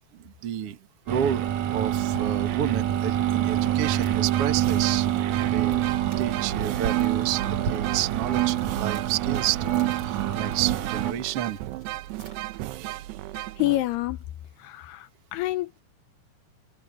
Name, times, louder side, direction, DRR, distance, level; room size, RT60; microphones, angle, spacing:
voice 1, 0.1-0.8 1.1-5.1 5.5-5.9 6.2-11.6, right 10 dB, 50° right, 2.0 m, -30 dB
sound 1, 1.1-11.1, right 12 dB, 65° right, 1.9 m, -26 dB
sound 2, 3.5-14.3, right 2 dB, 30° right, 8.0 m, -57 dB
sound 3, 3.5-14.1, right 16 dB, 85° right, 2.9 m, -35 dB
voice 2, 13.6-14.2 14.6-15.1 15.3-15.8, left 18 dB, 80° left, 2.8 m, -27 dB
omnidirectional pair, 4.8 m